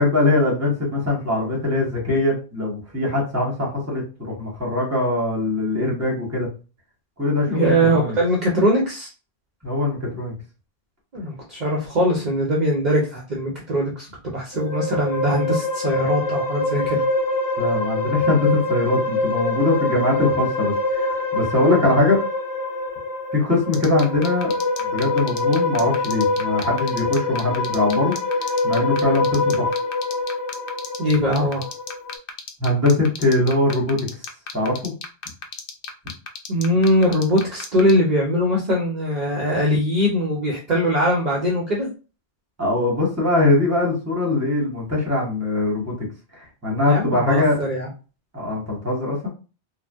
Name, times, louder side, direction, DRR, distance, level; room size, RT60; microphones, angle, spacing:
voice 1, 0.0-6.5 7.2-8.1 9.6-10.3 17.6-22.2 23.3-24.5 24.9-28.1 28.6-29.7 32.6-34.0 34.5-34.9 42.6-45.9 46.3-47.6 48.3-49.3, left 2 dB, 15° right, -2 dB, 0.9 m, -21 dB
voice 2, 7.5-9.1 11.1-17.0 31.0-31.7 36.5-41.9 46.8-47.9, equal, 45° right, -3 dB, 0.7 m, -21 dB
sound 1, 14.5-32.1, left 2 dB, 30° left, 0.4 m, -25 dB
sound 2, 23.7-37.9, left 7 dB, 65° left, 0.7 m, -33 dB
2.6 x 2.1 x 3.3 m, 0.33 s
omnidirectional pair, 1.1 m